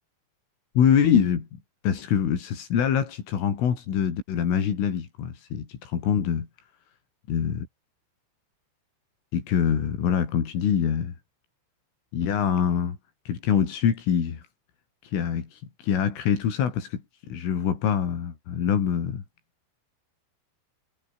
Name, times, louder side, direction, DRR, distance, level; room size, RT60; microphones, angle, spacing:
voice 1, 0.8-1.5 1.8-6.5 7.3-7.7 9.3-11.1 12.1-13.0 13.3-14.4 15.0-19.2, left 8 dB, 90° left, 6.6 m, -24 dB
omnidirectional pair, 5.6 m